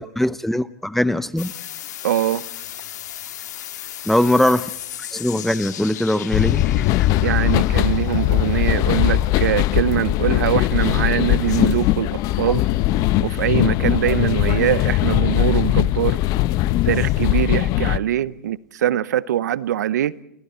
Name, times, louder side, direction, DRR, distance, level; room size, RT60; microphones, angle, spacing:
voice 1, 0.0-1.5 4.1-4.7 5.1-6.6, left 1 dB, ahead, 0.8 m, -20 dB
sound 1, 1.4-9.8 10.8-11.9, left 11 dB, 75° left, 2.2 m, -36 dB
voice 2, 2.0-2.4 7.2-12.1 12.4-12.7 13.2-16.2 16.9-20.1, right 11 dB, 75° right, 0.8 m, -22 dB
sound 2, 6.3-18.0, left 15 dB, 40° left, 0.9 m, -20 dB
29.5 x 28.5 x 4.4 m
hypercardioid pair, 120°, 9 cm